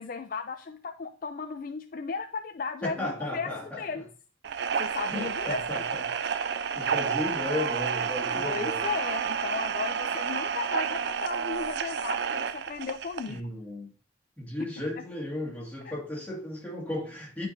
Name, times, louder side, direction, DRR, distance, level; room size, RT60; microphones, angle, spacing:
voice 1, 0.0-3.5 3.8-4.1 4.8-5.6 8.3-13.4, left 5 dB, 45° left, 0.4 m, -35 dB
voice 2, 2.8-4.0 5.1-6.0 6.3-8.9 13.3-13.9 14.4-17.5, left 1 dB, 10° left, 1.9 m, -35 dB
sound 1, 4.4-13.4, right 6 dB, 60° right, 0.4 m, -30 dB
9.1 x 4.5 x 2.6 m
head